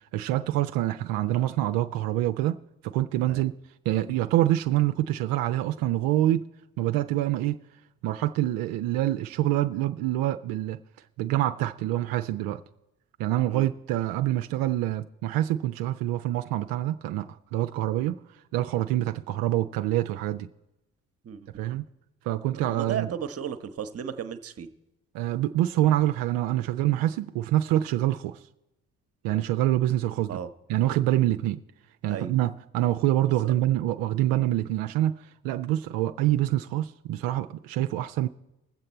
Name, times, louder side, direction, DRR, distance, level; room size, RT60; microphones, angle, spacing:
voice 1, 0.1-2.6 2.8-3.5 3.9-6.4 6.8-7.6 8.0-10.8 11.2-12.6 13.2-18.1 18.5-20.5 21.6-21.8 22.3-23.1 25.1-28.4 29.2-30.4 30.7-31.6 32.0-38.3, right 14 dB, 55° right, 0.5 m, -26 dB
voice 2, 22.7-24.7 30.3-30.5 32.1-32.3 33.4-33.5, right 8 dB, 35° right, 0.9 m, -34 dB
20.5 x 7.6 x 4.2 m
figure-of-eight pair, 45°, 41 cm